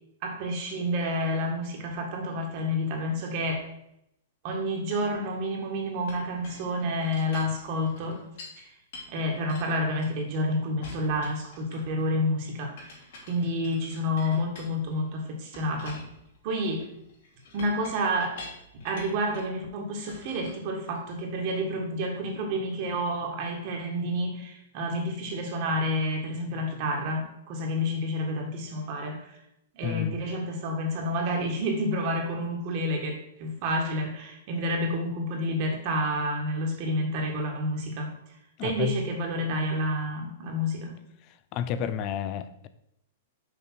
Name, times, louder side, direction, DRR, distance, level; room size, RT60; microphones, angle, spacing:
voice 1, 0.2-3.7 4.4-8.2 8.6-8.7 9.1-12.9 13.3-16.0 16.4-16.8 17.5-18.4 18.8-29.3 29.7-38.1 38.6-41.0, equal, 35° right, 1 dB, 1.6 m, -29 dB
Chink clink, 6.1-8.6 8.9-10.4 10.8-12.0 12.8-15.1 15.5-19.6 20.1-21.2, left 3 dB, 55° left, 2.9 m, -47 dB
voice 2, 29.8-30.2 38.6-39.0 41.5-42.7, left 8 dB, 30° left, 12 dB, 0.5 m, -30 dB
6.2 x 5.1 x 6.2 m, 0.79 s
hypercardioid pair, 165°, 0 cm